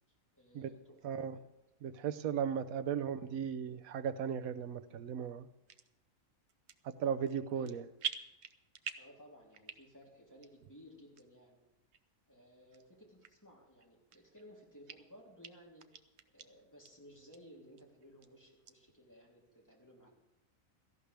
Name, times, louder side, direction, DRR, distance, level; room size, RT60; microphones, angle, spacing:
voice 1, 0.1-1.4 7.5-7.7 9.0-11.6 12.3-16.0 16.3-20.1, equal, 15° left, -3 dB, 3.1 m, -58 dB
voice 2, 1.0-1.3 1.8-5.5 6.8-7.8, right 8 dB, 85° right, 10 dB, 1.2 m, -36 dB
sound 1, 5.7-5.9 6.5-7.0 7.3-7.7 8.0-9.2 9.5-10.0 10.4-10.5 11.2-11.3 11.9-12.0 12.7-12.8 13.2-13.3 13.8-14.5 14.9-15.0 15.4-15.5 15.8-16.5 16.8-16.9 17.3-17.4 17.8-18.3 18.7-18.8, right 9 dB, 60° right, 0.9 m, -43 dB
17.0 x 14.0 x 3.4 m, 0.99 s
omnidirectional pair, 1.4 m